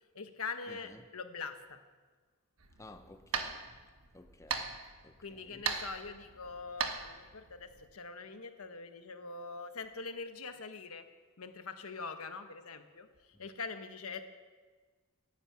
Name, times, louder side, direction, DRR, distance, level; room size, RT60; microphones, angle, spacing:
voice 1, 0.1-1.8 5.2-11.0 11.4-14.2, left 4 dB, 80° left, 8 dB, 1.2 m, -43 dB
voice 2, 0.7-1.1 2.8-3.8 4.1-4.8 5.0-5.6 13.4-13.5, left 2 dB, 15° left, 6 dB, 0.7 m, -55 dB
sound 1, 2.6-7.9, right 5 dB, 70° right, 1.4 m, -40 dB
11.5 x 11.0 x 8.7 m, 1.4 s
head